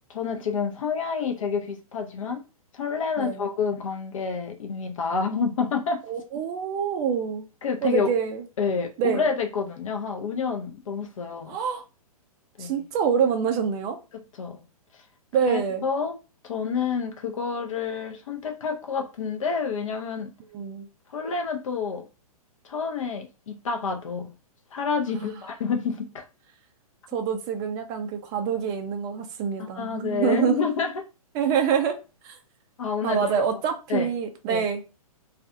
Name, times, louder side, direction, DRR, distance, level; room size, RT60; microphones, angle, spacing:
voice 1, 0.1-2.4 2.7-6.0 7.6-8.1 8.6-11.6 12.6-12.8 14.4-14.6 15.5-16.1 16.4-20.3 21.1-22.1 22.6-24.3 24.7-26.2 29.6-31.0 32.8-33.4 33.9-34.1 34.5-34.7, left 5 dB, 60° left, 0.7 m, -28 dB
voice 2, 6.1-7.5 7.8-8.4 9.0-9.3 11.5-11.8 12.6-14.0 15.3-15.8 20.5-20.9 25.1-25.4 27.1-30.7 31.3-32.0 32.2-32.4 33.0-34.8, right 7 dB, 20° right, 0.4 m, -26 dB
2.4 x 2.3 x 2.6 m
figure-of-eight pair, 115°, 19 cm